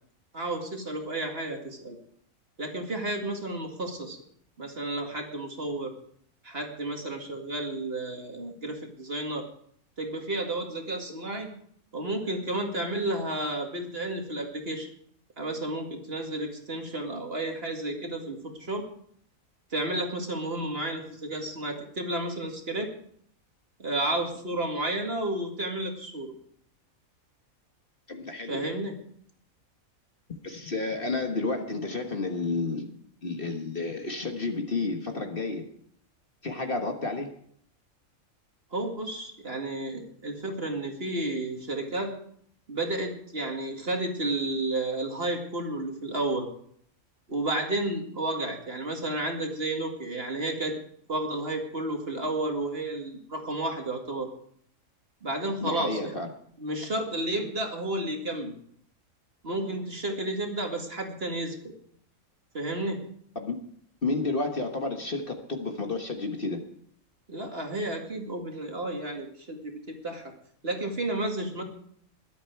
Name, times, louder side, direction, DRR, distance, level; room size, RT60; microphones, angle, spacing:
voice 1, 0.3-2.0 2.6-4.2 4.6-5.9 6.4-9.5 10.0-11.5 11.9-14.9 15.4-18.9 19.7-22.9 23.8-26.3 28.5-28.9 38.7-42.1 42.7-46.5 47.3-50.7 51.1-54.3 55.2-56.1 56.6-58.5 59.4-61.7 62.5-63.0 67.3-70.3 70.6-71.6, right 1 dB, 45° right, 2 dB, 2.3 m, -32 dB
voice 2, 28.1-28.7 30.4-32.9 33.2-35.6 36.4-37.3 55.6-56.3 63.3-63.5 64.0-66.6, left 3 dB, 40° left, 4 dB, 1.6 m, -31 dB
22.0 x 8.4 x 4.6 m, 0.63 s
omnidirectional pair, 1.5 m